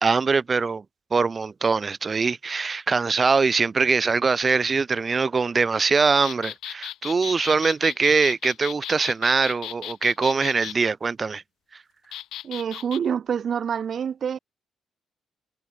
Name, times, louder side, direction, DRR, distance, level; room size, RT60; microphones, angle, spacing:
voice 1, 0.0-0.8 1.1-11.4, right 4 dB, 35° right, 0.6 m, -22 dB
sound 1, 6.2-10.8 12.1-13.0, left 13 dB, 80° left, 3.5 m, -35 dB
voice 2, 12.4-14.4, right 7 dB, 55° right, 1.1 m, -27 dB
cardioid pair, 90°, 0 cm